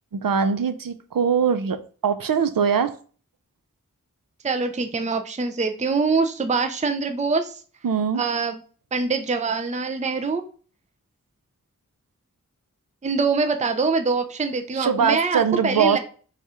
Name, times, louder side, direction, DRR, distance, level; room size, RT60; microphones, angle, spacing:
voice 1, 0.1-3.0 7.8-8.2 14.7-16.0, right 6 dB, 80° right, 0.5 m, -22 dB
voice 2, 4.4-7.6 8.1-8.6 8.9-10.4 13.0-16.0, right 4 dB, 20° right, 0.5 m, -24 dB
4.1 x 2.4 x 4.8 m
wide cardioid pair, 50°, 33 cm